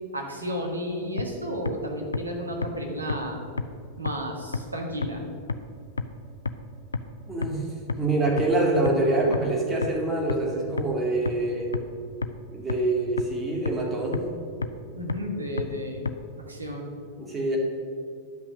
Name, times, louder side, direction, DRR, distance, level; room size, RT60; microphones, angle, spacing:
voice 1, 0.1-3.4 4.0-5.2 14.9-16.1 16.4-16.9, equal, 80° right, 1 dB, 1.5 m, -32 dB
sound 1, 1.2-1.3 1.7-1.8 2.1-2.2 2.6-2.7 3.1-3.2 3.6-3.7 4.1-4.2 4.5-4.6 5.0-5.1 5.5-5.6 6.0-6.1 6.5-6.6 6.9-7.0 7.4-7.5 7.9-8.0 8.4-8.5 8.9-9.0 9.3-9.4 9.8-9.9 10.3-10.4 10.8-10.9 11.3-11.4 11.7-11.8 12.2-12.3 12.7-12.8 13.2-13.3 13.7-13.8 14.1-14.2 14.6-14.7 15.1-15.2 15.6-15.7 16.1-16.2, left 4 dB, 75° left, 0.4 m, -27 dB
voice 2, 7.3-7.7 8.0-11.7 12.5-14.2 17.2-17.6, right 2 dB, 15° right, -2 dB, 2.4 m, -25 dB
10.5 x 5.8 x 6.3 m, 2.4 s
figure-of-eight pair, 90°, 0 cm